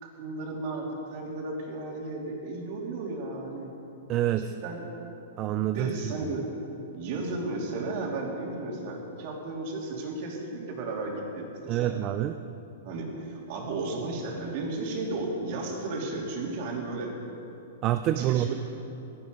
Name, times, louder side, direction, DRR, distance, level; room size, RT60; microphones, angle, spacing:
voice 1, 0.0-3.7 4.4-4.9 5.7-6.4 6.9-12.0 12.8-17.1 18.2-18.5, right 2 dB, 40° right, -1 dB, 2.9 m, -34 dB
voice 2, 4.1-4.5 5.4-5.9 11.7-12.4 17.8-18.5, right 12 dB, 25° right, 9 dB, 0.4 m, -26 dB
16.0 x 13.0 x 5.3 m, 2.9 s
hypercardioid pair, 160°, 0 cm